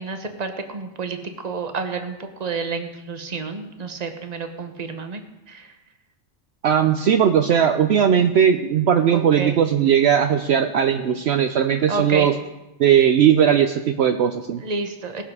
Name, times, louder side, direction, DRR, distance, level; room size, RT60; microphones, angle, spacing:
voice 1, 0.0-5.8 9.1-9.6 11.9-12.3 14.6-15.2, right 4 dB, 35° right, 7 dB, 1.1 m, -30 dB
voice 2, 6.6-12.3 12.8-14.6, right 8 dB, 65° right, 7 dB, 0.8 m, -18 dB
19.0 x 6.9 x 4.8 m, 1.0 s
omnidirectional pair, 1.2 m